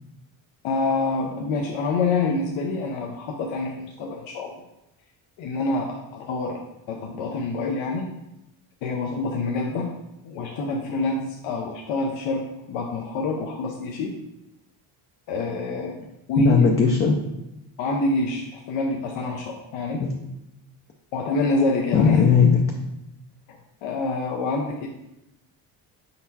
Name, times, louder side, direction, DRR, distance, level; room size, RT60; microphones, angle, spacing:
voice 1, 0.6-4.5 5.4-6.6 6.9-8.1 8.8-9.9 10.2-12.4 12.7-14.1 15.3-15.9 16.3-16.7 17.8-20.0 21.1-22.2 23.8-24.9, left 3 dB, 70° left, 0 dB, 0.7 m, -26 dB
voice 2, 16.4-17.2 20.0-20.1 21.9-22.6, left 6 dB, 30° left, 1 dB, 0.5 m, -17 dB
4.5 x 4.1 x 2.7 m, 0.87 s
cardioid pair, 95°, 49 cm